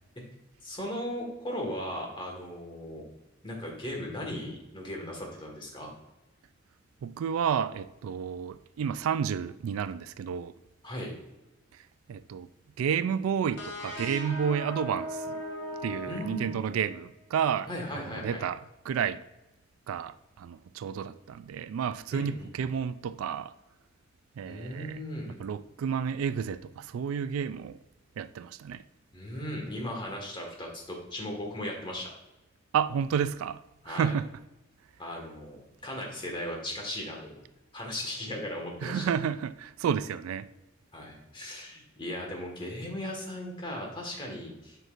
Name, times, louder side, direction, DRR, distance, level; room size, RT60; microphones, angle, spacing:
voice 1, 0.6-3.0 3.4-5.9 10.8-11.1 16.1-16.6 17.7-18.4 22.1-22.7 24.4-25.3 29.1-32.1 33.8-34.1 35.0-37.3 37.7-39.0 40.9-44.8, left 1 dB, 25° left, 1.6 m, -37 dB
voice 2, 7.0-10.5 12.1-12.5 12.8-15.4 15.8-18.6 18.9-19.2 19.9-23.5 24.4-25.0 25.3-27.8 28.2-28.8 32.7-33.6 33.9-34.3 38.8-40.5, right 7 dB, 85° right, 0.3 m, -31 dB
sound 1, 13.6-17.1, right 1 dB, 75° left, 2.2 m, -38 dB
8.0 x 5.9 x 2.5 m
head